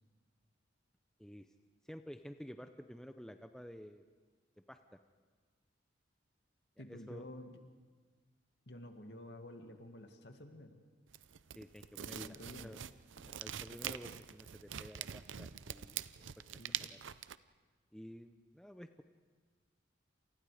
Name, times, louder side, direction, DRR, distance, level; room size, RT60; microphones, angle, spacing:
voice 1, 1.9-4.0 4.7-5.0 6.9-7.3 11.6-12.4 12.6-12.9 13.2-16.0 16.8-17.0 17.9-19.0, equal, 5° left, 7 dB, 0.6 m, -51 dB
voice 2, 6.8-7.6 8.7-10.8 12.1-12.8 16.6-16.9, left 1 dB, 60° left, 5 dB, 2.2 m, -51 dB
sound 1, 11.1-17.4, right 9 dB, 80° right, 0.6 m, -44 dB
29.0 x 27.5 x 5.0 m, 1.4 s
head